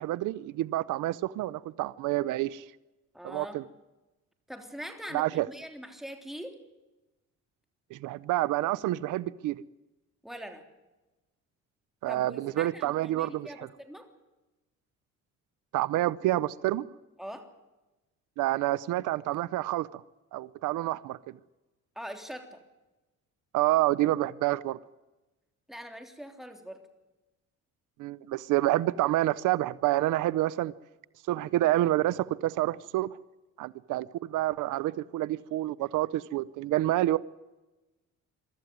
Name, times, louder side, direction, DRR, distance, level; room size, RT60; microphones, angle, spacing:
voice 1, 0.0-2.6 3.2-3.6 5.1-5.5 7.9-9.6 12.0-13.7 15.7-16.9 18.4-20.0 20.3-21.2 23.5-24.8 28.0-30.7 31.3-33.1 33.6-37.2, right 15 dB, 90° right, 0.6 m, -28 dB
voice 2, 3.1-3.6 4.5-6.6 10.2-10.7 12.1-14.1 17.2-17.5 21.9-22.6 25.7-26.8, equal, ahead, 3.3 m, -42 dB
23.0 x 13.5 x 9.3 m
cardioid pair, 90°, 30 cm